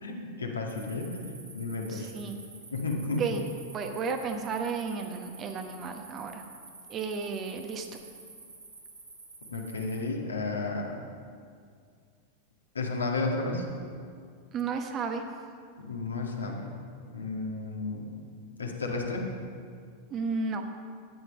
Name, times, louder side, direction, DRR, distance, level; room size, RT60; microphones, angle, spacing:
voice 1, 0.0-2.1 2.7-3.2 9.5-11.0 12.7-13.6 15.8-16.8 17.1-18.1 18.6-19.2, left 3 dB, 75° left, 0 dB, 1.9 m, -32 dB
sound 1, 0.7-10.0, right 3 dB, 75° right, 3.3 m, -50 dB
voice 2, 1.9-2.4 3.2-3.4 3.7-6.4 6.9-7.9 14.5-15.2 20.1-20.6, right 5 dB, 30° right, 4 dB, 1.2 m, -33 dB
13.0 x 9.8 x 5.3 m, 2.2 s
figure-of-eight pair, 90°, 0 cm